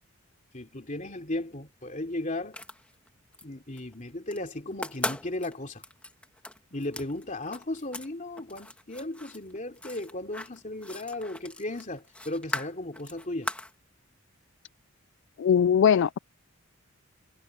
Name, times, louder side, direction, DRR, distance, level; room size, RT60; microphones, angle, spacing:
voice 1, 0.5-2.6 3.4-5.8 6.7-13.5, left 1 dB, 35° left, 3.2 m, -36 dB
sound 1, 2.5-3.4 3.8-4.4 4.7-8.1 8.4-13.7, left 1 dB, 5° left, 1.7 m, -39 dB
voice 2, 15.4-16.2, left 8 dB, 55° left, 0.3 m, -21 dB
head